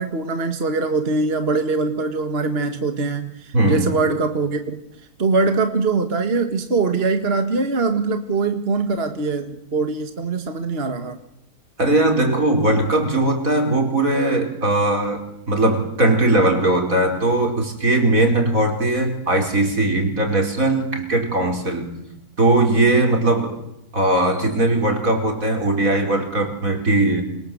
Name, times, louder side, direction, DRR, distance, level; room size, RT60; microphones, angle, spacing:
voice 1, 0.0-4.8 5.2-11.2, right 3 dB, 40° right, 7 dB, 1.9 m, -22 dB
voice 2, 3.5-3.9 11.8-21.9 22.4-23.6 23.9-27.2, right 2 dB, 55° right, 3 dB, 5.4 m, -19 dB
27.5 x 27.0 x 8.0 m, 0.82 s
omnidirectional pair, 1.7 m